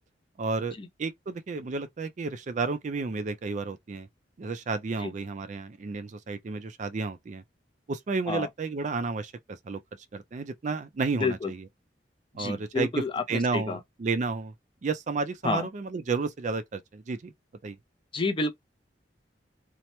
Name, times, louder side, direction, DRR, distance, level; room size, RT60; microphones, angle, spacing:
voice 1, 0.4-4.1 4.4-7.4 7.9-9.8 10.1-11.7 12.3-13.0 13.3-14.5 14.8-17.3 17.6-17.8, right 4 dB, 45° right, 0.4 m, -32 dB
voice 2, 11.2-11.5 12.4-13.2 13.5-13.8 15.4-15.7 18.1-18.6, left 3 dB, 30° left, 0.5 m, -29 dB
2.9 x 2.1 x 3.0 m
head